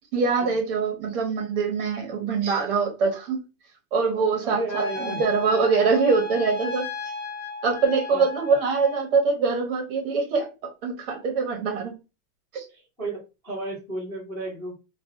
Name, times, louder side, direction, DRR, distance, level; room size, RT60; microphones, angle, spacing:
voice 1, 0.1-3.4 3.9-6.9 7.6-10.5 10.8-12.0 12.5-12.6, right 4 dB, 40° right, 0.6 m, -23 dB
voice 2, 4.4-5.3 8.1-8.2 12.7-14.7, right 2 dB, 5° left, 0.4 m, -33 dB
Trumpet, 4.7-9.0, left 4 dB, 55° left, 0.8 m, -35 dB
2.5 x 2.1 x 2.6 m
supercardioid pair, 165°, 45 cm